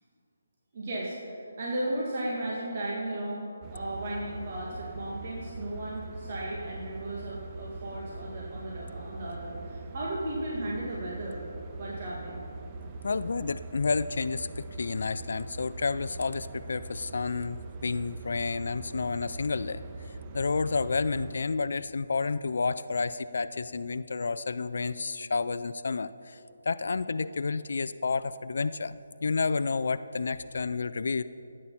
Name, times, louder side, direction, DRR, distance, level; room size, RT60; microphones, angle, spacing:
voice 1, 0.7-11.4 11.8-12.4, right 1 dB, 45° right, -4 dB, 1.9 m, -35 dB
sound 1, 3.6-21.4, right 3 dB, 25° right, 0.6 m, -42 dB
voice 2, 13.0-19.8 20.3-26.4 26.7-28.9 29.2-31.2, left 4 dB, 65° left, 13 dB, 0.3 m, -30 dB
12.5 x 8.8 x 5.6 m, 2.8 s
hypercardioid pair, 160°, 0 cm